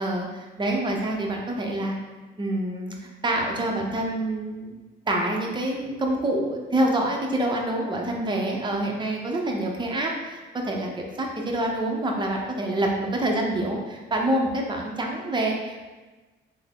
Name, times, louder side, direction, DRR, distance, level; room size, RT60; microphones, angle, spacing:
voice 1, 0.0-2.0 2.4-4.7 5.1-10.9 11.2-15.9, right 1 dB, 25° right, 0 dB, 0.6 m, -26 dB
3.5 x 2.0 x 3.5 m, 1.2 s
cardioid pair, 90°, 20 cm